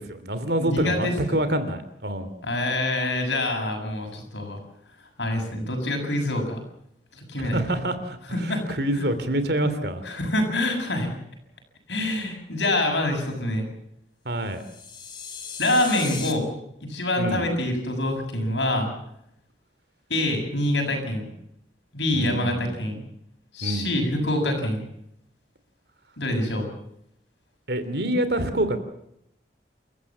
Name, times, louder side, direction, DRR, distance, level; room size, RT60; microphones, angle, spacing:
voice 1, 0.0-2.3 7.4-8.2 8.7-10.0 14.2-14.6 17.2-17.4 22.1-22.7 23.6-23.9 27.7-28.8, right 1 dB, 65° right, 11 dB, 2.9 m, -26 dB
voice 2, 0.6-1.1 2.4-4.6 5.2-6.6 7.1-7.6 8.3-8.6 8.9-9.0 10.1-11.1 11.9-13.6 15.6-16.5 16.8-18.9 20.1-21.3 21.9-23.0 23.5-24.8 26.2-26.7, left 1 dB, 85° left, 3 dB, 7.1 m, -25 dB
sound 1, 14.5-16.3, left 6 dB, 25° left, 2.2 m, -37 dB
28.5 x 14.5 x 7.4 m, 0.76 s
head